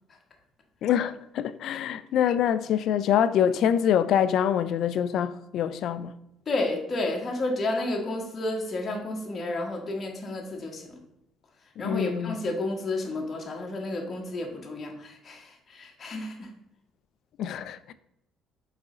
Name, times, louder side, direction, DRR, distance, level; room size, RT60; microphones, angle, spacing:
voice 1, 0.8-6.1 11.8-12.4 17.4-17.9, left 9 dB, 55° left, 0.4 m, -25 dB
voice 2, 6.5-11.0 11.8-16.5, left 2 dB, 25° left, 1.2 m, -31 dB
4.9 x 4.1 x 4.9 m
cardioid pair, 160°, 0 cm